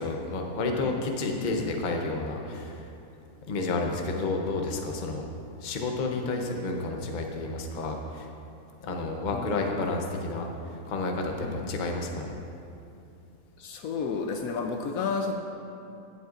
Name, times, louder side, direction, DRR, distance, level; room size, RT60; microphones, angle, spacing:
voice 1, 0.0-2.8 3.5-5.3 5.6-8.3 8.8-10.5 10.9-12.4, left 3 dB, 40° left, 2 dB, 0.8 m, -30 dB
voice 2, 13.6-15.3, left 5 dB, 75° left, 5 dB, 1.0 m, -32 dB
15.5 x 7.8 x 2.5 m, 2.6 s
omnidirectional pair, 1.6 m